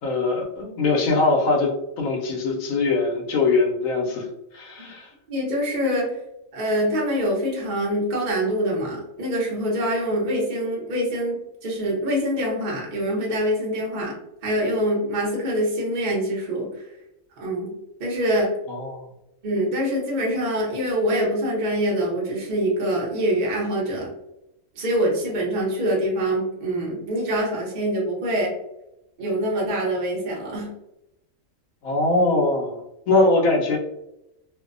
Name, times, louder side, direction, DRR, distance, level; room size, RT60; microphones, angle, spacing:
voice 1, 0.0-4.3 4.5-5.1 18.7-19.0 31.8-32.8 33.1-33.8, left 3 dB, 85° left, 1 dB, 1.0 m, -22 dB
voice 2, 5.3-6.1 6.5-14.2 14.4-16.7 17.4-17.7 18.0-18.5 19.4-24.1 24.7-28.5 29.2-30.7, equal, 45° right, -3 dB, 0.7 m, -24 dB
2.6 x 2.0 x 2.4 m, 0.87 s
omnidirectional pair, 1.4 m